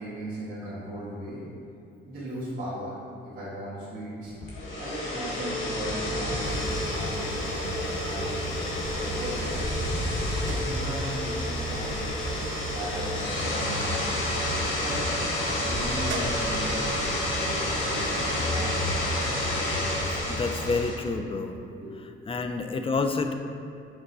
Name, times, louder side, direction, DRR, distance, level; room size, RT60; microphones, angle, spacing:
voice 1, 0.0-1.4 2.0-3.0 3.2-4.3 4.8-8.5 8.8-9.8 10.1-12.3 12.7-14.0 14.6-15.1 15.6-17.6 17.9-19.0 21.8-21.9 22.3-22.4, right 1 dB, 45° right, -10 dB, 1.6 m, -37 dB
sound 1, 4.4-20.9, left 1 dB, 80° left, 1.6 m, -29 dB
sound 2, 6.4-20.9, right 2 dB, 70° right, 0.6 m, -37 dB
voice 2, 20.2-21.6 22.3-23.3, left 4 dB, 25° left, 7 dB, 0.5 m, -28 dB
6.1 x 3.9 x 5.5 m, 2.5 s
cardioid pair, 90°, 20 cm